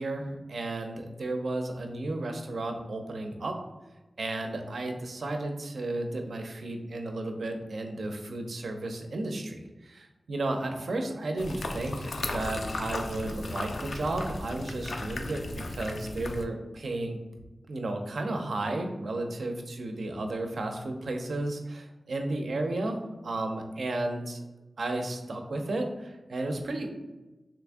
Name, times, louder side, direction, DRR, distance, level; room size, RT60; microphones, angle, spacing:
voice 1, 0.0-3.6 4.2-17.2 17.7-23.0 23.2-24.4 24.8-27.0, right 2 dB, 85° right, 4 dB, 0.4 m, -33 dB
sound 1, 11.4-16.4, left 2 dB, 75° left, 0.3 m, -36 dB
2.9 x 2.5 x 3.4 m, 1.1 s
wide cardioid pair, 70°, 0 cm